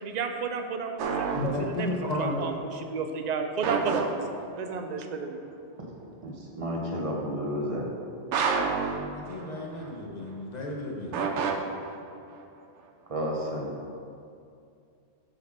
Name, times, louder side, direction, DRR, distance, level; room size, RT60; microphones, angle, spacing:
voice 1, 0.0-5.4, right 5 dB, 50° right, 5 dB, 0.6 m, -32 dB
sound 1, 1.0-2.0 3.6-4.7 8.3-9.9 11.1-12.4, right 5 dB, 85° right, 1.0 m, -30 dB
voice 2, 1.3-2.5 9.1-11.3, left 2 dB, 40° left, -2 dB, 1.2 m, -33 dB
voice 3, 6.2-7.9 13.1-13.7, equal, 30° right, -2 dB, 1.1 m, -31 dB
7.7 x 4.0 x 6.4 m, 2.5 s
omnidirectional pair, 1.2 m